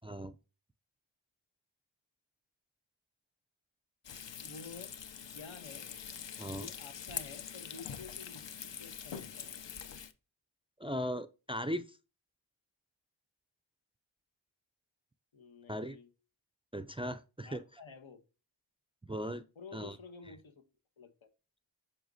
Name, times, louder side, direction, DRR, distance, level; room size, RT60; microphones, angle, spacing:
voice 1, 0.0-0.3 6.4-6.7 10.8-12.0 15.7-16.0 16.7-17.6 19.0-19.4 19.7-20.0, equal, 15° right, 0.3 m, -38 dB
Frying (food), 4.0-10.1, left 8 dB, 70° left, 0.6 m, -44 dB
voice 2, 4.4-5.0 5.3-5.9 6.5-9.6 15.3-16.1 17.4-18.2 19.6-20.6 21.0-21.3, left 4 dB, 85° left, 1.0 m, -51 dB
7.7 x 5.5 x 2.6 m
wide cardioid pair, 45°, 46 cm